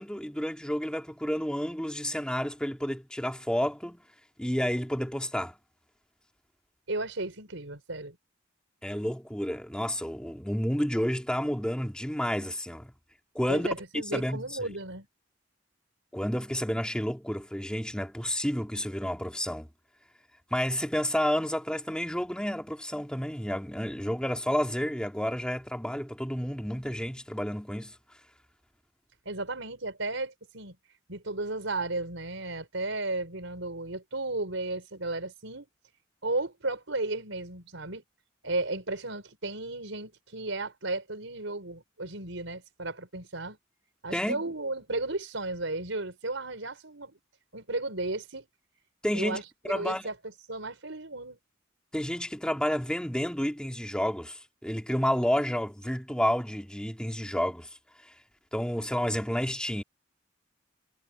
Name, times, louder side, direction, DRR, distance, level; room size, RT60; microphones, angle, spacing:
voice 1, 0.0-4.0 4.4-5.6 8.8-12.9 13.3-13.7 14.1-14.7 16.1-19.7 20.5-27.9 44.1-44.4 49.0-49.4 49.7-50.0 51.9-57.7 58.5-59.8, equal, 5° left, 2.6 m, -30 dB
voice 2, 6.9-8.2 13.5-15.1 29.3-30.8 31.1-35.7 36.2-38.0 38.4-43.6 44.0-47.2 47.5-48.5 49.1-50.1 50.5-51.4, right 2 dB, 75° right, 5.3 m, -34 dB
head